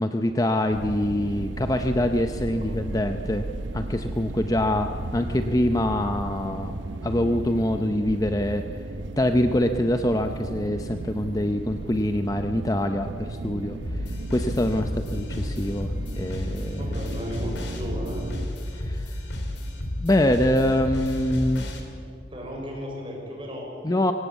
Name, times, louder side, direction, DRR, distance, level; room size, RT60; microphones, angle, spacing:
voice 1, 0.0-3.5 3.7-6.8 7.0-8.7 9.2-16.8 18.7-19.2 20.0-21.7 23.8-24.1, left 1 dB, 20° left, 7 dB, 0.6 m, -25 dB
sound 1, 0.7-18.5, right 2 dB, 85° right, 0.8 m, -35 dB
voice 2, 2.2-2.6 16.8-18.2 22.3-23.8, equal, 30° right, -1 dB, 6.0 m, -35 dB
sound 2, 13.8-21.8, left 1 dB, 75° left, 3.2 m, -32 dB
23.0 x 17.5 x 8.2 m, 2.5 s
head